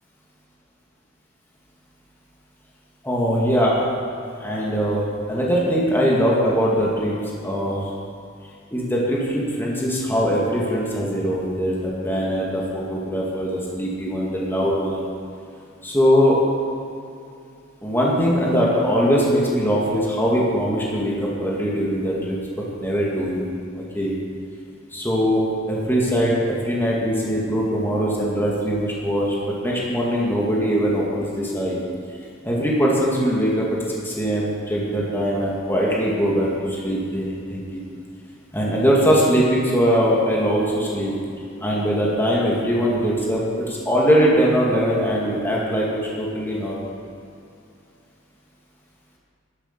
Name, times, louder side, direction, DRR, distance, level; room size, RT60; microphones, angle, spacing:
voice 1, 3.0-3.8 4.2-7.9 8.7-15.1 15.8-16.4 17.8-22.4 22.8-23.4 23.8-24.1 24.9-25.4 25.7-31.8 32.4-37.8 38.5-41.1 41.6-46.9, equal, 10° left, -5 dB, 2.3 m, -21 dB
11.5 x 9.9 x 6.8 m, 2.5 s
head